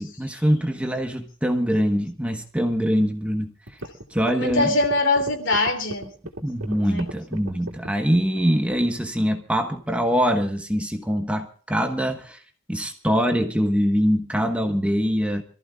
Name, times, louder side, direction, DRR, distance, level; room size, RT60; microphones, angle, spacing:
voice 1, 0.0-3.5 4.1-4.7 6.4-12.4 12.7-15.4, equal, 5° right, 4 dB, 1.2 m, -23 dB
sound 1, 3.2-3.3 3.7-8.3, right 1 dB, 70° right, 2.5 m, -36 dB
voice 2, 4.3-6.1 6.8-7.0, left 2 dB, 60° left, 6 dB, 3.2 m, -22 dB
27.0 x 14.5 x 2.4 m, 0.42 s
head